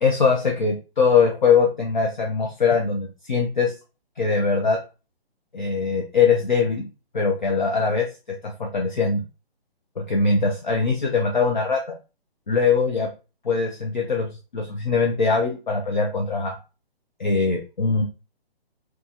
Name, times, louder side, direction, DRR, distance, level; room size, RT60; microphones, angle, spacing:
voice 1, 0.0-3.7 4.2-4.8 5.5-6.9 7.1-8.1 8.4-9.2 10.0-12.0 12.5-13.1 13.4-14.3 14.5-16.6 17.2-18.0, left 5 dB, 50° left, 1 dB, 0.4 m, -21 dB
2.6 x 2.3 x 2.6 m, 0.31 s
hypercardioid pair, 175°, 31 cm